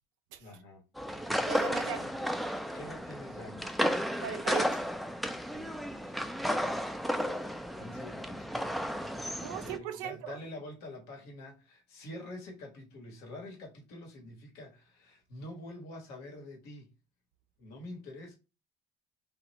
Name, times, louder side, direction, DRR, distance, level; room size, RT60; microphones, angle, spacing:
voice 1, 0.4-0.8 2.7-3.9 5.5-6.1 7.7-16.9 17.6-18.4, left 1 dB, 80° left, 1.3 m, -47 dB
sound 1, 1.0-9.8, equal, ahead, 0.4 m, -33 dB
voice 2, 1.5-2.1 4.2-4.8 9.4-10.4, right 8 dB, 90° right, 0.4 m, -37 dB
3.0 x 2.5 x 2.8 m
supercardioid pair, 80°, 17 cm